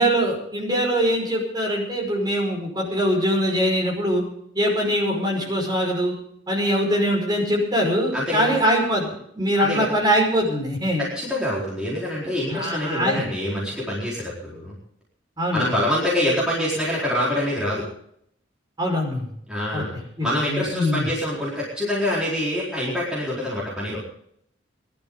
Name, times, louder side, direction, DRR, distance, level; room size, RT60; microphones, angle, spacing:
voice 1, 0.0-4.2 4.5-6.1 6.5-11.0 12.5-13.2 15.4-15.6 18.8-19.3 19.7-21.1, equal, 20° right, -2 dB, 5.6 m, -23 dB
voice 2, 8.1-8.6 9.6-9.9 11.0-14.8 15.5-17.9 19.5-19.9 20.2-24.0, left 1 dB, 5° right, -8 dB, 4.6 m, -25 dB
22.0 x 12.0 x 4.0 m, 0.70 s
head